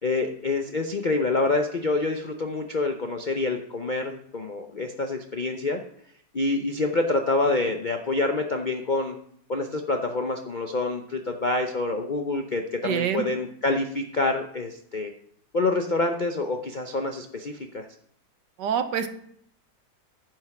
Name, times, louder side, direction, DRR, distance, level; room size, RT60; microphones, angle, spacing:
voice 1, 0.0-5.8 6.3-9.1 9.5-15.1 15.5-17.9, left 2 dB, 70° left, 5 dB, 0.4 m, -27 dB
voice 2, 12.8-13.3 18.6-19.1, right 8 dB, 70° right, 9 dB, 1.5 m, -26 dB
9.7 x 7.6 x 5.9 m, 0.67 s
omnidirectional pair, 2.0 m